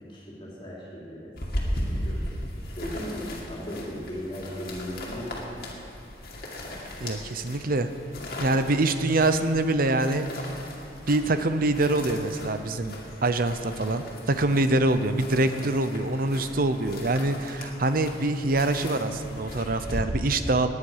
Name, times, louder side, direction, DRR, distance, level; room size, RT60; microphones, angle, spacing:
voice 1, 0.0-2.2 2.6-5.3, equal, 30° left, -4 dB, 3.1 m, -37 dB
sound 1, 1.4-20.0, left 1 dB, 55° left, 2.4 m, -37 dB
voice 2, 7.0-7.9 8.4-10.3 11.1-12.9 13.2-20.7, right 2 dB, 55° right, 10 dB, 0.8 m, -25 dB
19.0 x 9.7 x 5.6 m, 2.6 s
head